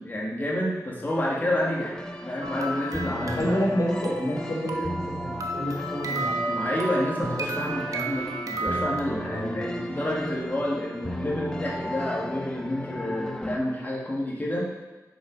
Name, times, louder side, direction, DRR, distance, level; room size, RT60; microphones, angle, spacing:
voice 1, 0.0-2.0 2.3-3.6 6.5-14.7, left 1 dB, 30° left, -4 dB, 1.9 m, -29 dB
sound 1, 1.1-13.6, left 1 dB, 10° left, 0.6 m, -35 dB
sound 2, 2.4-9.0, right 3 dB, 60° right, 0.8 m, -33 dB
voice 2, 3.2-4.9 5.2-6.6 9.3-9.5, equal, 65° left, -7 dB, 2.9 m, -29 dB
7.3 x 6.0 x 5.2 m, 1.2 s
wide cardioid pair, 105°, 7 cm